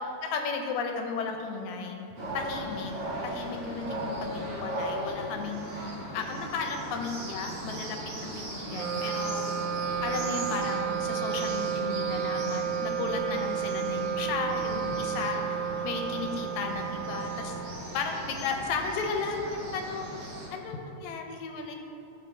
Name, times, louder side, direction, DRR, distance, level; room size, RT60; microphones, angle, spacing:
voice 1, 0.0-2.9 3.2-8.0 8.3-9.5 10.0-17.6 17.9-21.8, left 4 dB, 80° left, 3 dB, 2.0 m, -34 dB
sound 1, 2.2-20.5, right 1 dB, 60° right, 2.3 m, -38 dB
Wind instrument woodwind instrument, 8.7-18.3, right 8 dB, 80° right, 1.5 m, -32 dB
13.5 x 5.6 x 2.7 m, 2.8 s
omnidirectional pair, 3.4 m